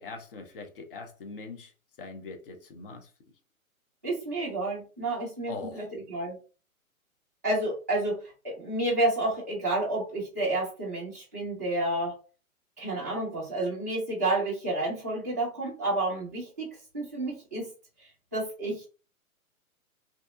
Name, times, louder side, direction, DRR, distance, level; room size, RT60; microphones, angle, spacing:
voice 1, 0.0-1.7 2.0-3.1 5.5-5.9, left 3 dB, 40° left, 0.6 m, -41 dB
voice 2, 4.0-6.4 7.4-12.1 12.8-16.7 16.9-17.7 18.3-18.9, right 2 dB, 15° right, 0.3 m, -30 dB
2.7 x 2.1 x 2.4 m
figure-of-eight pair, 120°, 43 cm